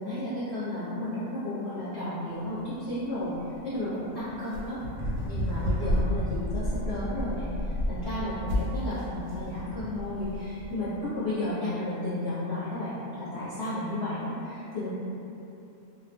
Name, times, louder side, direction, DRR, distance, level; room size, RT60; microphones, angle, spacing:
voice 1, 0.0-3.3 3.6-4.8 5.2-14.9, left 1 dB, 60° left, -14 dB, 0.8 m, -33 dB
sound 1, 2.4-10.7, equal, 65° right, 0.8 m, -31 dB
2.5 x 2.1 x 2.8 m, 2.9 s
omnidirectional pair, 1.6 m